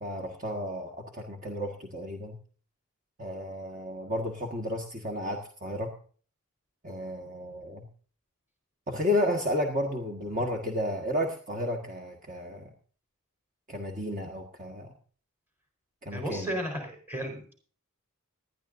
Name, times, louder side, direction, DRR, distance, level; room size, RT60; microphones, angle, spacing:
voice 1, 0.0-2.3 3.2-5.9 6.8-7.8 8.9-12.7 13.7-14.9 16.0-16.5, left 1 dB, 35° right, 1 dB, 1.6 m, -32 dB
voice 2, 16.1-17.5, equal, 10° right, 3 dB, 4.4 m, -34 dB
19.5 x 12.0 x 2.6 m, 0.42 s
head